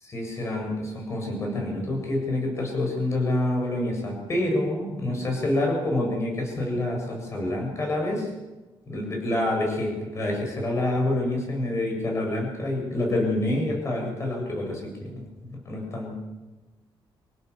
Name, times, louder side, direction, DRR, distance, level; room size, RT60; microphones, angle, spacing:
voice 1, 0.0-8.3 8.9-16.1, left 1 dB, 30° left, 1 dB, 7.5 m, -27 dB
27.0 x 16.5 x 7.1 m, 1.1 s
wide cardioid pair, 175°, 9 cm